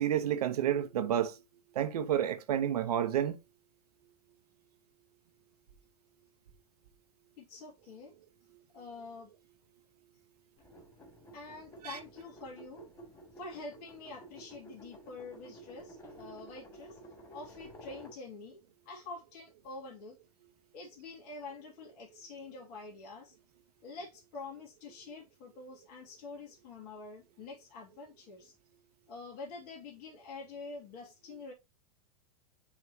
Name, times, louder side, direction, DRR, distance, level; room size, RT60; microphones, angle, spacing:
voice 1, 0.0-1.4 1.7-3.4 11.8-12.0, right 10 dB, 75° right, 1.1 m, -30 dB
voice 2, 7.4-8.1 8.7-9.3 11.3-12.9 13.4-17.0 17.3-18.6 18.9-20.2 20.7-23.3 23.8-28.5 29.1-31.5, left 3 dB, 50° left, 2.5 m, -46 dB
sound 1, 10.6-18.2, right 1 dB, 15° left, 3.1 m, -52 dB
9.7 x 3.5 x 3.0 m
hypercardioid pair, 115°, 20 cm